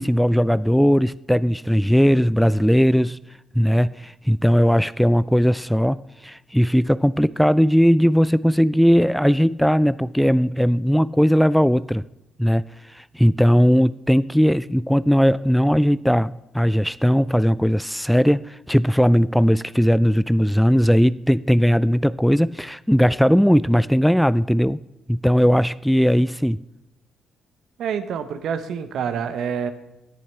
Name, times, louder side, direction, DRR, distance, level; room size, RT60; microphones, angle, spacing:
voice 1, 0.0-3.2 3.6-12.0 12.4-24.8 25.1-26.6, equal, ahead, 0.3 m, -18 dB
voice 2, 27.8-29.7, right 7 dB, 65° right, 1.1 m, -27 dB
17.5 x 10.5 x 3.3 m
hypercardioid pair, 50°, 0 cm